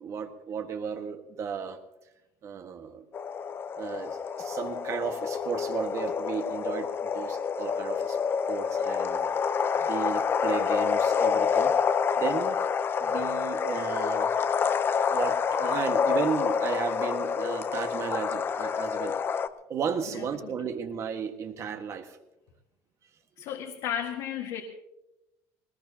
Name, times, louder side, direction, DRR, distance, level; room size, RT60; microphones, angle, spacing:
voice 1, 0.0-1.8 2.4-3.0 3.8-8.2 8.5-9.3 9.8-11.7 12.2-12.6 13.0-14.4 15.1-19.2 19.7-22.2, right 7 dB, 40° right, 6 dB, 1.6 m, -34 dB
sound 1, 3.1-19.5, left 6 dB, 30° left, 0.7 m, -28 dB
voice 2, 20.1-20.6 23.4-24.6, left 9 dB, 70° left, 0 dB, 1.8 m, -34 dB
20.0 x 20.0 x 2.9 m, 0.93 s
cardioid pair, 135°, 8 cm